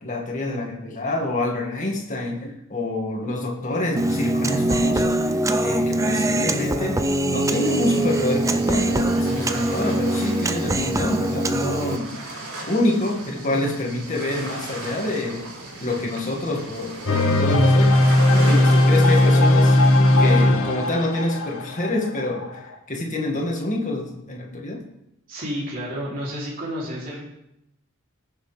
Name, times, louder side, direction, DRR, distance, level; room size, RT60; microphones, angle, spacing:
voice 1, 0.0-7.0 7.3-12.1 12.7-15.4 15.8-19.8 20.2-22.6 22.9-24.8, left 2 dB, 35° left, -1 dB, 2.1 m, -27 dB
Human voice, 4.0-12.0, right 1 dB, 15° right, 0.5 m, -23 dB
sound 1, 7.4-20.4, right 2 dB, 90° right, 4.0 m, -37 dB
sound 2, 17.1-22.7, left 1 dB, 75° left, 1.5 m, -17 dB
voice 2, 25.3-27.2, equal, 40° right, -6 dB, 3.4 m, -30 dB
20.0 x 7.2 x 3.5 m, 0.82 s
head